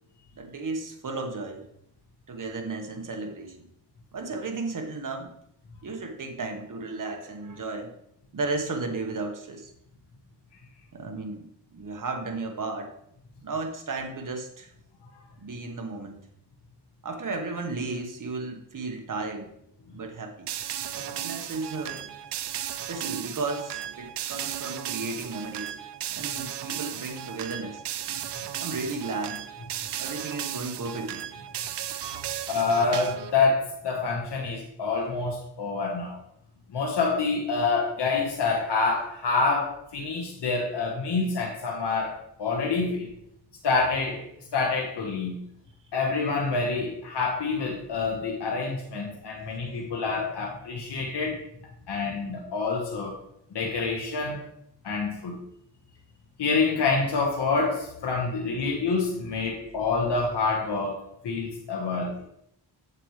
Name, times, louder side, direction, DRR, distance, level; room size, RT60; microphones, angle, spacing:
voice 1, 0.4-1.7 2.3-3.6 4.1-5.3 5.8-8.0 8.3-9.7 10.9-12.9 13.4-14.7 15.4-16.2 17.0-19.5 19.9-20.5 20.9-22.0 22.7-25.7 26.1-27.8 28.6-29.4 30.0-31.3 49.7-49.8, right 3 dB, 50° right, 4 dB, 1.4 m, -34 dB
sound 1, 20.5-33.4, right 11 dB, 75° right, 0.6 m, -35 dB
voice 2, 32.5-36.1 36.7-43.1 43.6-44.2 44.5-45.4 45.9-51.4 51.9-53.1 53.5-54.4 54.8-55.4 56.4-62.2, left 4 dB, 75° left, 0 dB, 1.4 m, -27 dB
7.9 x 7.5 x 3.2 m, 0.75 s
wide cardioid pair, 90°, 41 cm